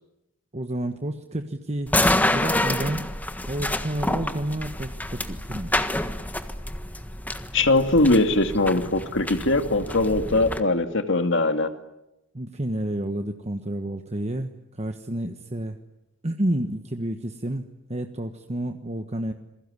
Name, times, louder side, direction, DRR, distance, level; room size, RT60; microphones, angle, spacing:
voice 1, 0.5-3.1 3.5-5.7 12.3-15.8 16.2-19.3, right 1 dB, 35° right, 6 dB, 1.3 m, -30 dB
sound 1, 1.9-10.6, left 1 dB, 10° left, 1.5 m, -28 dB
voice 2, 7.5-11.7, left 2 dB, 65° left, 7 dB, 2.3 m, -21 dB
28.0 x 22.0 x 9.8 m, 0.89 s
head